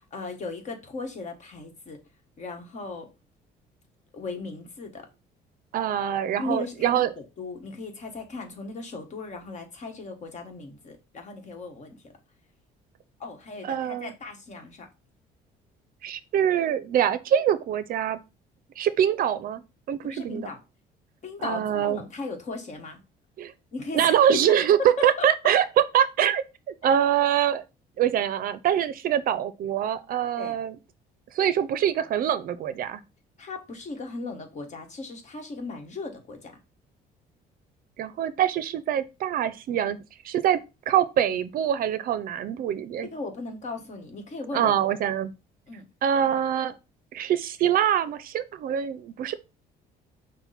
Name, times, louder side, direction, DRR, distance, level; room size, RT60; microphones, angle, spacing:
voice 1, 0.0-2.0 2.4-3.1 4.1-5.1 6.4-12.1 13.2-14.9 20.0-20.6 21.2-23.0 23.7-24.4 24.8-25.3 30.4-30.6 33.4-36.5 43.1-44.7 45.7-45.8, left 3 dB, 45° left, 1.2 m, -37 dB
voice 2, 5.7-7.1 13.6-14.1 16.0-18.2 18.8-19.6 19.9-20.5 21.4-22.0 23.4-23.5 23.9-24.8 25.0-25.6 25.9-27.6 28.0-30.7 31.3-33.0 38.0-40.0 40.2-40.6 40.9-43.1 44.5-45.3 46.0-46.7 47.1-49.3, right 9 dB, 60° right, 0.5 m, -24 dB
5.8 x 2.1 x 4.0 m
cardioid pair, 110°, 17 cm